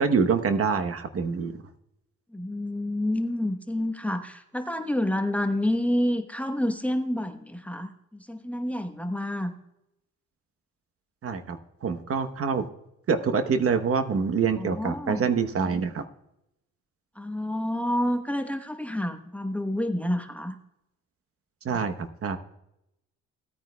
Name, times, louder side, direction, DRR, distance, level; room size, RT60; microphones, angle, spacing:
voice 1, 0.0-1.6 11.2-12.7 13.1-16.0 21.6-21.9 22.2-22.4, right 5 dB, 50° right, 8 dB, 1.0 m, -25 dB
voice 2, 2.3-7.9 8.3-9.5 14.6-15.2 17.2-20.6, left 1 dB, 5° left, 7 dB, 1.0 m, -28 dB
17.0 x 9.2 x 2.3 m, 0.84 s
cardioid pair, 90°, 30 cm